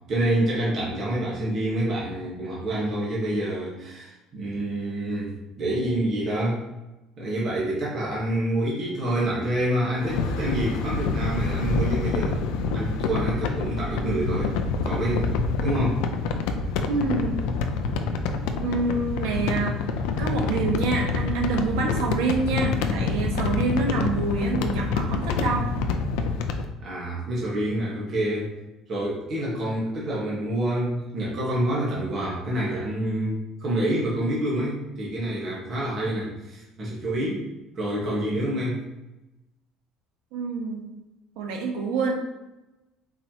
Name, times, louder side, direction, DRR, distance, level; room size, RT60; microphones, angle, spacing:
voice 1, 0.1-6.6 7.2-12.4 12.7-14.5 14.8-15.3 15.6-16.0 26.8-28.5 28.9-37.4 37.7-38.8, right 1 dB, 35° right, -5 dB, 1.2 m, -27 dB
sound 1, 10.0-26.7, left 4 dB, 85° left, 0.5 m, -27 dB
voice 2, 16.8-17.5 18.6-19.8 20.2-25.7 40.3-40.8 41.4-42.1, right 4 dB, 85° right, 1 dB, 1.1 m, -27 dB
4.4 x 4.2 x 2.9 m, 0.98 s
cardioid pair, 170°, 0 cm